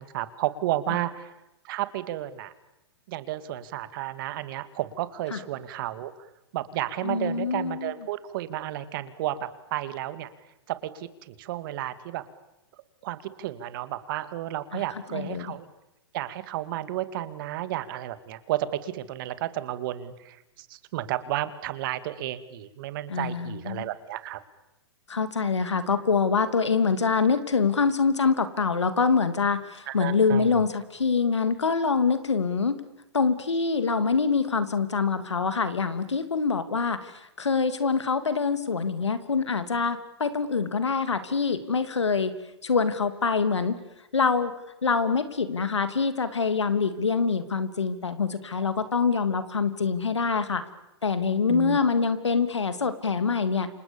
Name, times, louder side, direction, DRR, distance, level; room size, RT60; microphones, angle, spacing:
voice 1, 0.0-1.3 1.6-2.5 3.1-6.3 6.5-10.3 10.7-12.2 13.0-15.7 16.1-24.4 29.9-30.6 51.5-51.8, right 14 dB, 50° right, 13 dB, 2.3 m, -32 dB
voice 2, 7.0-7.9 14.7-14.8 15.1-15.5 23.1-23.9 25.1-32.8 33.1-37.1 37.4-42.3 42.6-43.8 44.1-44.5 44.8-50.6 51.0-53.7, left 5 dB, 90° left, 11 dB, 3.0 m, -25 dB
29.0 x 27.0 x 7.2 m, 0.93 s
hypercardioid pair, 125°, 14 cm